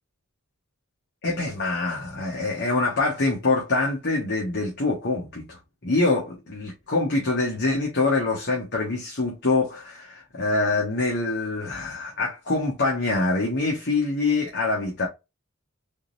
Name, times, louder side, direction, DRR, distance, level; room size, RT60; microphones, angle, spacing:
voice 1, 1.2-15.1, left 3 dB, 50° left, 1.1 m, -25 dB
3.6 x 2.9 x 2.6 m
head